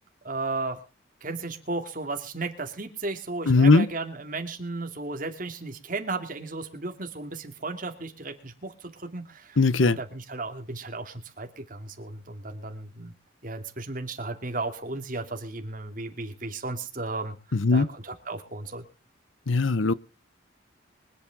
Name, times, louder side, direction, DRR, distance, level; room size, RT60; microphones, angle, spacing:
voice 1, 0.2-0.8 1.2-13.1 13.4-17.3 17.7-18.8, right 3 dB, 40° right, 2.6 m, -34 dB
voice 2, 3.5-3.9 9.6-10.0 17.5-17.9 19.5-19.9, left 3 dB, 80° left, 0.8 m, -19 dB
24.5 x 8.7 x 3.6 m
head